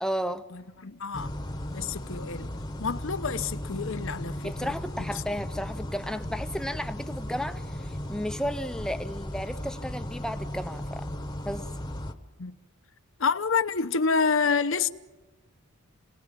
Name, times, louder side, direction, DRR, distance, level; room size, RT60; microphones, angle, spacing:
voice 1, 0.0-0.4 4.4-11.1 11.4-11.7, equal, 5° left, 0.7 m, -33 dB
voice 2, 0.5-1.3 1.7-2.5 2.8-4.7 12.4-12.6 13.2-14.9, left 5 dB, 60° left, 0.9 m, -28 dB
sound 1, 1.1-12.1, left 1 dB, 20° left, 1.2 m, -36 dB
27.5 x 19.0 x 7.5 m
head